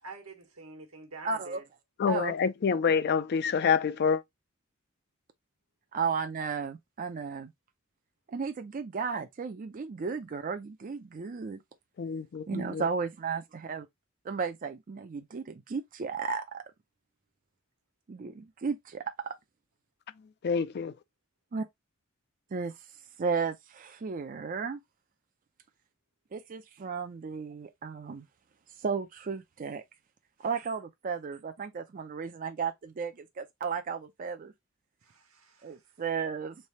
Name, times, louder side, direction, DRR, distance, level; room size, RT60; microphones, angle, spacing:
voice 1, 0.0-1.6 35.0-35.9, right 2 dB, 80° right, 1.2 m, -47 dB
voice 2, 1.2-1.6 2.1-2.3 5.9-7.5 8.3-11.6 12.5-13.9 14.2-16.6 18.1-19.3 21.5-21.7 22.5-22.7 23.2-24.8 26.3-28.2 28.8-29.8 30.4-34.5 35.6-36.6, right 5 dB, 40° right, 0.4 m, -34 dB
voice 3, 2.0-4.2 12.0-12.8 20.4-20.9, left 6 dB, 50° left, 0.4 m, -27 dB
3.3 x 2.7 x 4.2 m
head